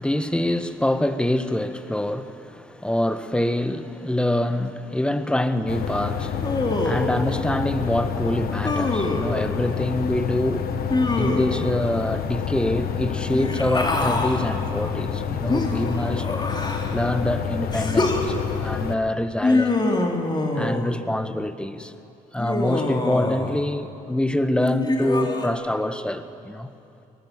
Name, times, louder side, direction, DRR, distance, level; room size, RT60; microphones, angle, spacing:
voice 1, 0.0-10.7 11.2-16.3 16.9-19.9 20.5-21.9 22.3-26.7, left 1 dB, 5° left, 1.4 m, -25 dB
sound 1, 5.7-18.9, left 7 dB, 65° left, 1.6 m, -28 dB
Human voice, 6.4-7.2 8.6-9.3 10.9-11.7 13.3-14.4 15.5-17.0 17.7-18.2 19.4-21.0 22.4-23.6 24.6-25.5, left 2 dB, 25° left, 3.2 m, -25 dB
23.0 x 19.0 x 7.6 m
hypercardioid pair, 55°, 17 cm